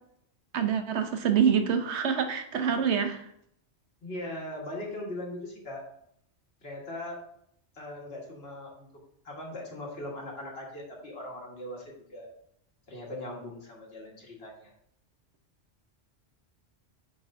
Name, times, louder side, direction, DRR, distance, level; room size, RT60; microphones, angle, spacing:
voice 1, 0.5-3.2, right 7 dB, 85° right, 6 dB, 1.1 m, -26 dB
voice 2, 4.0-5.8 6.6-7.2 7.8-8.9 9.2-12.3 12.9-14.7, left 1 dB, 65° left, -1 dB, 1.8 m, -40 dB
7.6 x 4.8 x 2.6 m, 0.71 s
omnidirectional pair, 1.1 m